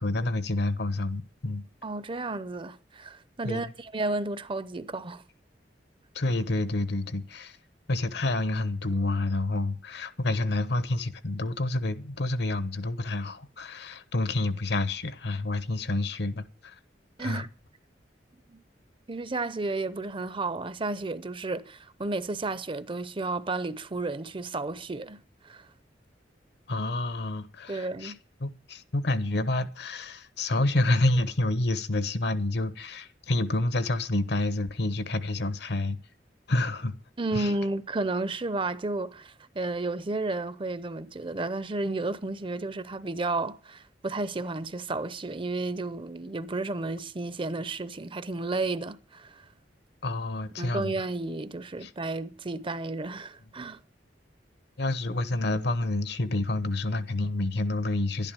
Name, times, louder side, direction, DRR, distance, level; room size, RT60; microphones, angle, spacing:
voice 1, 0.0-1.6 3.4-3.7 6.1-7.6 7.9-16.7 17.2-17.4 26.7-28.1 28.4-36.0 36.5-36.9 37.3-37.5 50.0-50.9 51.8-51.9 54.8-58.3, left 2 dB, 65° left, 1.1 m, -28 dB
voice 2, 1.8-5.2 17.2-17.5 18.5-18.6 19.1-25.7 27.7-28.2 37.2-49.4 50.6-53.8, right 2 dB, 30° right, 0.7 m, -32 dB
11.5 x 11.0 x 6.9 m
head